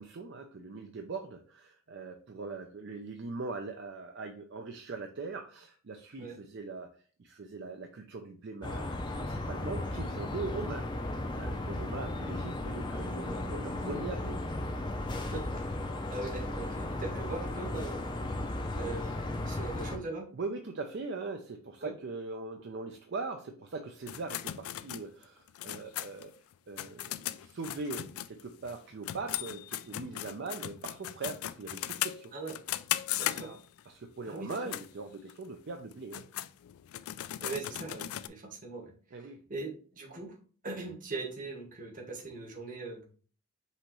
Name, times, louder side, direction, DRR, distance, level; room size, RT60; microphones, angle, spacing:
voice 1, 0.0-6.9 7.2-14.4 20.3-26.3 26.7-32.3 33.3-33.6 33.9-36.3 39.1-39.4, right 3 dB, 55° right, 5 dB, 0.4 m, -41 dB
sound 1, 8.6-20.0, left 2 dB, 20° left, 0.5 m, -35 dB
voice 2, 16.1-18.0 18.7-20.3 21.8-21.9 32.3-32.6 33.2-33.5 34.3-34.7 37.4-38.9 39.5-40.4 40.6-43.0, right 3 dB, 40° right, 2 dB, 1.1 m, -40 dB
sound 2, 24.1-28.8 29.0-33.8 34.4-34.9 35.3-35.4 35.9-38.3, left 13 dB, 85° left, 0.3 m, -37 dB
5.5 x 3.0 x 3.0 m, 0.41 s
head